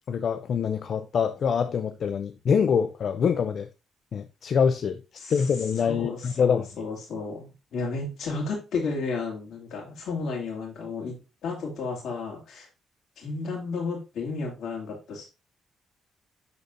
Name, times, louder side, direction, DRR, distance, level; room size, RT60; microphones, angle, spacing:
voice 1, 0.1-3.7 4.1-5.0 5.3-6.7, left 6 dB, 55° left, 0.5 m, -25 dB
voice 2, 5.2-11.2 11.4-12.7 13.2-15.3, left 4 dB, 70° left, 2.5 m, -33 dB
10.5 x 4.1 x 2.5 m
cardioid pair, 90°, 0 cm